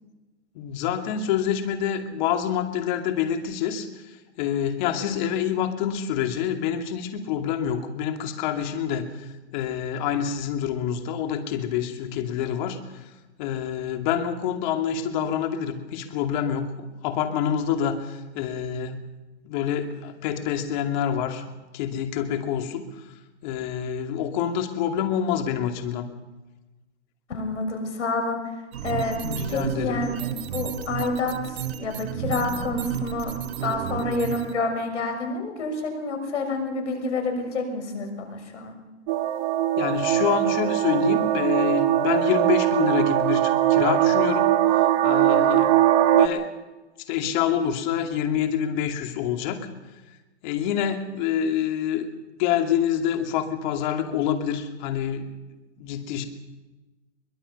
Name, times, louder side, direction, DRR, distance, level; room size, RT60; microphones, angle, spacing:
voice 1, 0.5-13.0 13.4-19.0 19.4-21.4 21.7-22.9 23.4-26.1 29.1-30.0 39.8-44.6 45.0-45.9 46.1-46.5 47.1-49.7 50.4-52.1 52.4-55.2 55.8-56.3, left 9 dB, 40° left, 5 dB, 2.6 m, -27 dB
voice 2, 27.3-28.5 28.8-29.2 29.5-33.3 33.6-38.7, left 3 dB, 80° left, 4 dB, 6.6 m, -28 dB
sound 1, 28.7-34.5, right 8 dB, 60° right, 1.5 m, -32 dB
sound 2, 39.1-46.3, right 13 dB, 35° right, 1.6 m, -21 dB
23.0 x 21.0 x 5.5 m, 1.1 s
hypercardioid pair, 145°, 35 cm